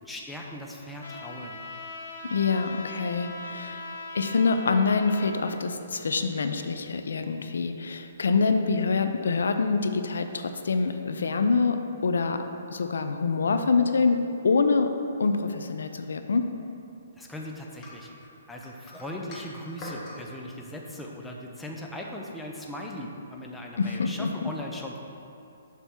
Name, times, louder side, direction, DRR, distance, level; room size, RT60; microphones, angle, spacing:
voice 1, 0.0-1.6 17.2-18.1 18.5-25.0, left 1 dB, 5° left, -1 dB, 0.5 m, -39 dB
Trumpet, 1.0-5.3, left 2 dB, 70° left, 1.1 m, -40 dB
voice 2, 2.2-3.8 4.1-12.4 12.7-16.5 23.8-24.5, left 4 dB, 85° left, 7 dB, 0.5 m, -25 dB
sound 1, 17.8-20.2, left 1 dB, 20° left, 1.2 m, -43 dB
7.2 x 3.5 x 5.9 m, 2.7 s
hypercardioid pair, 160°, 0 cm